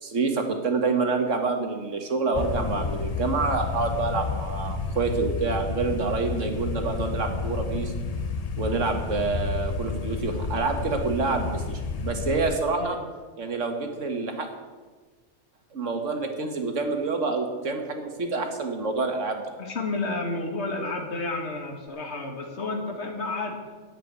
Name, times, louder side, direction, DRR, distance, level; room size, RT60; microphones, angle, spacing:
voice 1, 0.0-7.9 8.6-13.0 13.4-14.5 15.7-19.4, right 4 dB, 70° right, 5 dB, 1.8 m, -27 dB
sound 1, 2.3-12.5, left 4 dB, 40° left, 0.6 m, -31 dB
voice 2, 19.6-23.6, left 2 dB, 60° left, 2 dB, 2.0 m, -31 dB
10.0 x 7.6 x 9.5 m, 1.4 s
omnidirectional pair, 1.3 m